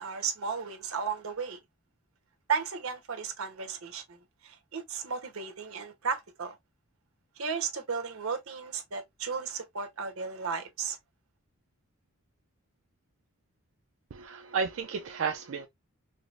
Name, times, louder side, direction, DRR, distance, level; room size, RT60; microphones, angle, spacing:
voice 1, 0.0-1.6 2.5-4.2 4.4-6.6 7.4-11.0, right 6 dB, 85° right, 0.9 m, -34 dB
voice 2, 14.1-15.7, right 5 dB, 65° right, 0.4 m, -32 dB
4.8 x 2.0 x 2.4 m
head